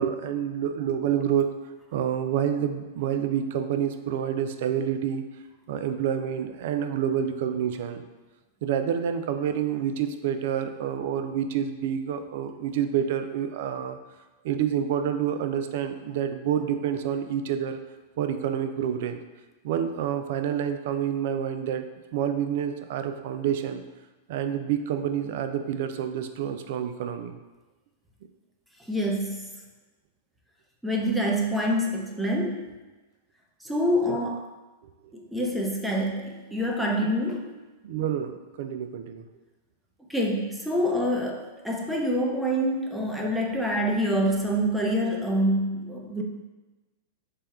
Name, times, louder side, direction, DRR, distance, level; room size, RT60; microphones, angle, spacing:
voice 1, 0.0-1.5 1.9-5.2 5.7-8.0 8.6-14.0 14.4-17.8 18.2-19.2 19.6-21.9 22.1-23.8 24.3-27.4 34.1-34.2 37.0-37.1 37.8-39.2, right 9 dB, 65° right, 8 dB, 0.3 m, -28 dB
voice 2, 28.9-29.5 30.8-32.7 33.6-34.5 35.1-37.5 40.1-46.2, equal, 5° right, -1 dB, 0.6 m, -26 dB
3.3 x 2.3 x 4.3 m, 1.2 s
hypercardioid pair, 120°, 0 cm